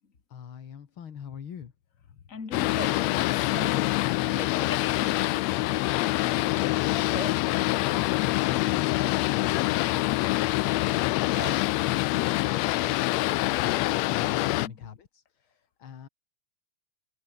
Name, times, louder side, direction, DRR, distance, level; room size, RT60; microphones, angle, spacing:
voice 1, 0.3-1.7 2.1-2.2 6.3-16.1, left 8 dB, 50° left, 2.3 m, -45 dB
voice 2, 2.3-6.8 14.5-14.7, left 6 dB, 25° left, 2.5 m, -42 dB
Boat Water vehicle, 2.5-14.7, left 18 dB, 80° left, 1.6 m, -25 dB
sound 1, 2.6-4.6 4.9-11.7 12.0-12.5 12.8-13.3, equal, 5° right, 2.7 m, -43 dB
omnidirectional pair, 3.5 m